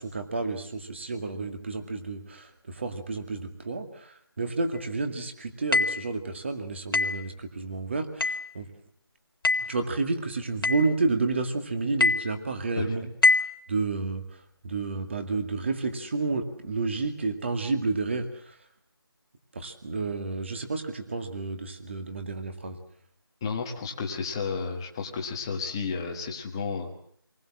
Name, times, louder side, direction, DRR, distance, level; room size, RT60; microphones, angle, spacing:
voice 1, 0.0-8.7 9.7-13.1 13.7-14.2 14.6-18.6 19.5-22.8, right 3 dB, 30° right, 6 dB, 2.2 m, -30 dB
sound 1, 5.7-6.1 6.9-7.3 8.2-8.5 9.4-9.8 10.6-10.9 12.0-12.3 13.2-13.6, left 3 dB, 60° left, 2.0 m, -24 dB
voice 2, 23.4-26.9, left 5 dB, 10° left, 2 dB, 1.3 m, -32 dB
26.5 x 20.0 x 7.6 m, 0.63 s
figure-of-eight pair, 175°, 13 cm